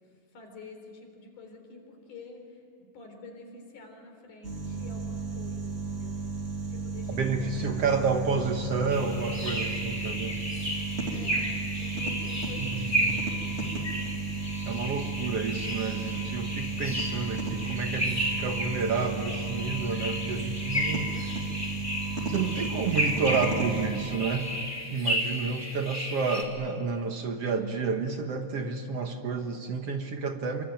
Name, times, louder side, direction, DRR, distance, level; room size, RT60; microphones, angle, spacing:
voice 1, 0.3-2.6 2.9-6.2 6.7-8.0 11.1-11.5 11.8-13.2 25.0-25.5, left 2 dB, 75° left, 4 dB, 5.4 m, -48 dB
sound 1, 4.4-23.9, right 3 dB, 20° right, 2.8 m, -34 dB
voice 2, 7.1-10.4 12.6-13.2 14.7-21.3 22.3-24.5 24.9-30.6, right 5 dB, 60° right, 5 dB, 2.0 m, -30 dB
sound 2, 8.9-26.4, equal, 5° left, 3.1 m, -33 dB
26.5 x 24.5 x 9.2 m, 2.4 s
omnidirectional pair, 3.7 m